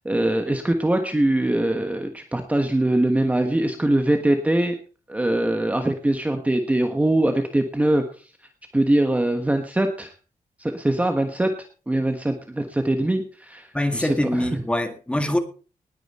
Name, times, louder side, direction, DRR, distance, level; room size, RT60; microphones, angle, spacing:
voice 1, 0.0-4.8 5.1-8.3 8.7-10.1 10.6-11.5 11.9-13.7 13.9-14.6, right 1 dB, 10° right, 5 dB, 1.2 m, -22 dB
voice 2, 13.7-15.4, left 1 dB, 10° left, 7 dB, 1.8 m, -24 dB
19.5 x 9.2 x 4.3 m, 0.38 s
wide cardioid pair, 170°, 14 cm